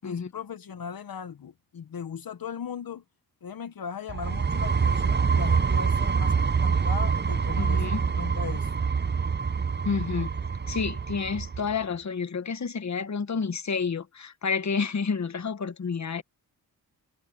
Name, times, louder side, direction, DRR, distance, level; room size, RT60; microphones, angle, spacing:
voice 1, 0.0-3.0 3.4-8.7, left 7 dB, 65° left, 1.2 m, -38 dB
sound 1, 4.1-11.7, right 5 dB, 30° right, 0.7 m, -26 dB
voice 2, 7.6-8.0 9.8-10.3 10.7-16.2, left 5 dB, 45° left, 1.4 m, -30 dB
cardioid pair, 70°, 38 cm